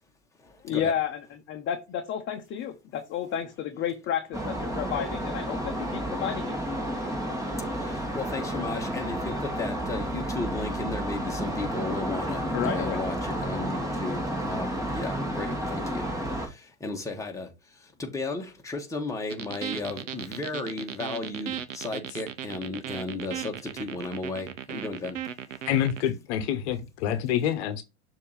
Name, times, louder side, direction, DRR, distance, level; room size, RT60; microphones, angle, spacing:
voice 1, 0.6-1.2 1.5-6.6 12.5-13.0, left 9 dB, 30° left, 1.0 m, -31 dB
sound 1, 4.3-16.5, right 1 dB, 10° right, 1.9 m, -31 dB
voice 2, 8.1-16.1 16.8-17.5 18.0-23.5 23.8-25.2, left 3 dB, 10° left, 1.6 m, -34 dB
sound 2, 19.3-26.0, right 10 dB, 80° right, 0.8 m, -36 dB
voice 3, 25.7-27.8, left 10 dB, 60° left, 1.1 m, -27 dB
6.8 x 3.0 x 5.2 m
hypercardioid pair, 100°, 37 cm